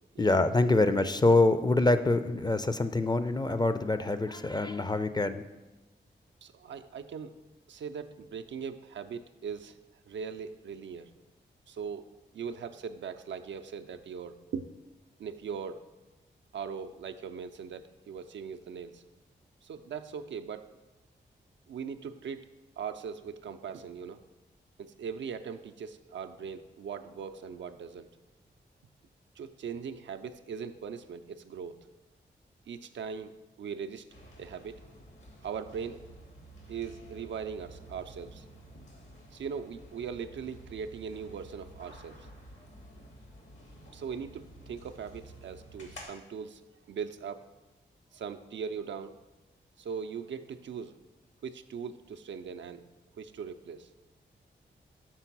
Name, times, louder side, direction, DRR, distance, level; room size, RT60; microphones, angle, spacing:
voice 1, 0.2-5.4, left 2 dB, 20° left, 11 dB, 0.5 m, -25 dB
voice 2, 6.4-7.4 7.7-9.8 10.1-11.1 11.7-12.0 12.3-14.6 15.2-15.8 16.5-19.0 19.6-20.6 21.7-22.5 22.8-24.2 24.8-28.1 29.4-31.8 32.7-34.0 34.4-34.8 35.4-36.0 36.7-38.4 39.3-42.3 43.9-46.6 46.9-47.5 48.1-49.2 49.8-51.0 51.4-52.9 53.2-53.9, right 6 dB, 70° right, 8 dB, 0.4 m, -40 dB
sound 1, 34.1-46.0, right 1 dB, 75° left, 1.6 m, -51 dB
6.0 x 3.8 x 5.9 m, 1.1 s
supercardioid pair, 40°, 20 cm